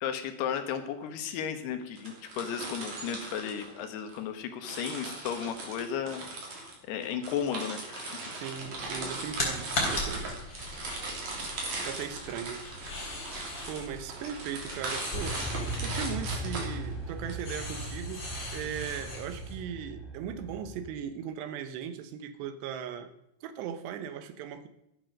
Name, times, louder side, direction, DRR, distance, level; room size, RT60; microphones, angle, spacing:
voice 1, 0.0-6.2 6.9-8.1, left 8 dB, 70° left, 8 dB, 3.0 m, -34 dB
sound 1, 2.0-4.2 4.6-17.3, right 2 dB, 45° right, 4.0 m, -39 dB
voice 2, 8.3-10.4 11.4-12.7 13.7-15.4 15.8-23.1 23.4-24.7, right 8 dB, 75° right, 11 dB, 2.8 m, -38 dB
sound 2, 8.6-19.5, left 2 dB, 20° left, 3.6 m, -39 dB
sound 3, 15.1-20.9, right 1 dB, ahead, 1.6 m, -38 dB
14.0 x 10.5 x 6.5 m, 0.81 s
omnidirectional pair, 5.2 m